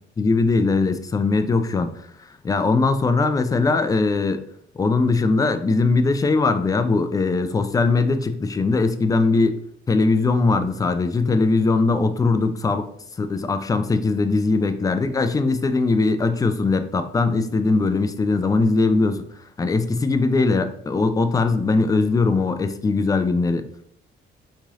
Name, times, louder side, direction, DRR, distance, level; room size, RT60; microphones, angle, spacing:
voice 1, 0.2-1.9 2.4-4.4 4.8-9.6 9.9-12.9 13.2-19.2 19.6-23.7, left 3 dB, 20° left, 9 dB, 0.3 m, -20 dB
3.1 x 2.7 x 3.5 m, 0.67 s
cardioid pair, 90°, 20 cm